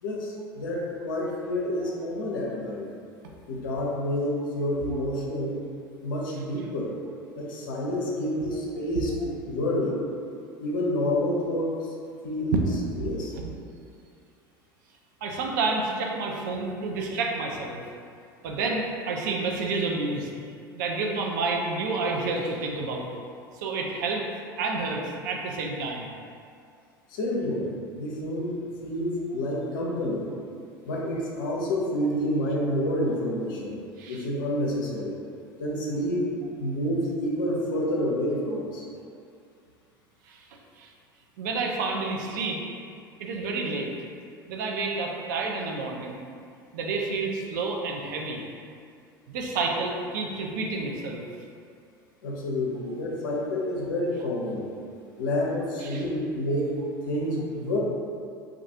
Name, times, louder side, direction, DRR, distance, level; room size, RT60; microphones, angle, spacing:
voice 1, 0.0-2.9 3.5-5.6 6.0-6.9 7.4-10.0 10.6-11.8 12.2-12.5 13.0-13.3 27.1-27.7 28.0-30.2 30.8-33.8 34.1-35.2 35.6-38.8 52.2-54.6 55.2-56.7 57.1-57.8, left 1 dB, 65° left, -2 dB, 0.5 m, -28 dB
voice 2, 15.2-17.8 18.4-20.3 20.7-23.1 23.6-24.2 24.6-26.1 34.0-34.2 40.3-40.4 40.8-40.9 41.4-42.6 43.2-43.9 44.5-46.2 46.7-48.4 49.3-51.2 55.8-56.0, right 3 dB, 55° right, 1 dB, 0.4 m, -29 dB
2.3 x 2.3 x 2.7 m, 2.3 s
figure-of-eight pair, 75°, 12 cm